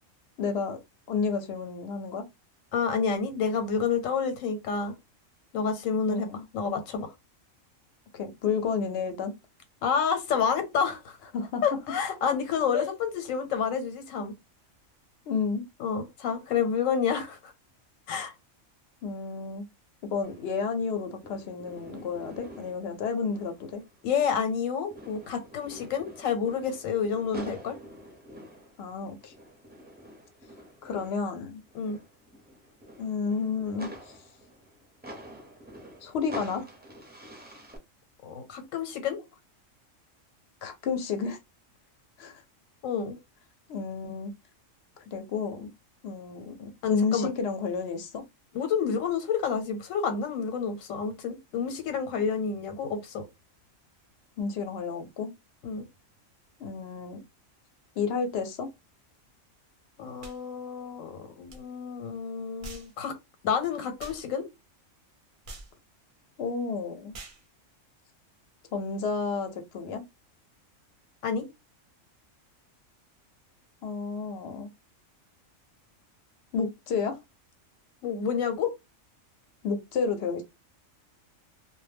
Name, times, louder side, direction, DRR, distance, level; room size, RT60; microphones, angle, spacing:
voice 1, 0.4-0.8 1.1-2.2 6.1-6.5 8.1-9.3 11.3-11.6 12.7-12.9 15.3-15.6 19.0-19.6 20.1-23.8 28.8-29.3 30.8-31.6 33.0-34.1 36.0-36.7 40.6-41.4 42.2-42.4 43.7-44.3 45.1-45.7 46.0-48.2 54.4-55.3 56.6-57.2 58.0-58.7 66.4-67.1 68.7-70.0 73.8-74.7 76.5-77.2 79.6-80.4, left 5 dB, 65° left, 0.7 m, -31 dB
voice 2, 2.7-4.9 5.5-6.3 6.5-7.1 9.8-11.3 11.6-14.3 15.8-17.5 18.1-18.3 24.0-27.8 31.7-32.0 38.2-39.2 42.8-43.2 46.8-47.3 48.5-53.2 55.6-55.8 60.0-63.1 63.4-64.4 71.2-71.4 78.0-78.7, left 6 dB, 90° left, 1.0 m, -29 dB
sound 1, 20.2-24.6 24.9-37.8, equal, 10° right, 0.5 m, -47 dB
sound 2, 60.2-60.4 61.5-61.6 62.6-62.9 64.0-64.2 65.5-65.7 67.1-67.4, right 2 dB, 50° right, 0.6 m, -44 dB
2.1 x 2.0 x 3.3 m
omnidirectional pair, 1.4 m